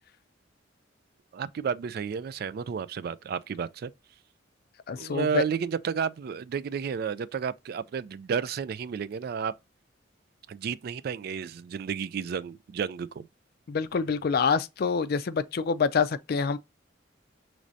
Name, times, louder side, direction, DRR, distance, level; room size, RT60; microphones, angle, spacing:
voice 1, 1.3-3.9 5.0-9.5 10.5-13.3, right 6 dB, 55° right, 0.3 m, -32 dB
voice 2, 4.9-5.4 13.7-16.6, left 5 dB, 55° left, 0.4 m, -26 dB
6.1 x 3.2 x 2.6 m
head